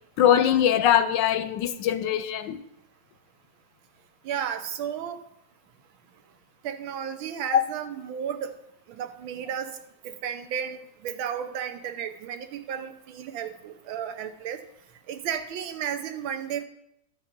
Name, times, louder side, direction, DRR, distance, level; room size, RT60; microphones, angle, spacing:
voice 1, 0.2-2.6 7.5-7.6, left 10 dB, 75° left, 11 dB, 1.2 m, -22 dB
voice 2, 4.2-5.2 6.6-8.5 8.9-9.8 10.0-14.6 15.1-16.6, right 8 dB, 85° right, 9 dB, 1.6 m, -33 dB
12.5 x 5.7 x 5.1 m, 0.80 s
omnidirectional pair, 2.2 m